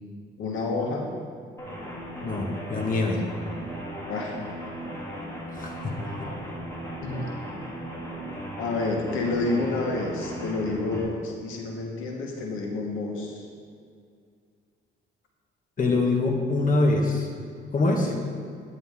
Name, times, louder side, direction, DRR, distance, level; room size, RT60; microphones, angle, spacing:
voice 1, 0.4-1.1 4.1-4.4 7.0-7.3 8.6-13.5 18.1-18.2, left 3 dB, 90° left, 0 dB, 1.4 m, -29 dB
sound 1, 1.6-11.0, equal, 15° left, 2.8 m, -37 dB
voice 2, 2.2-3.2 5.6-5.9 15.8-17.3 17.7-18.1, left 2 dB, 45° left, 1 dB, 1.6 m, -24 dB
10.5 x 9.4 x 3.6 m, 2.2 s
cardioid pair, 90°, 20 cm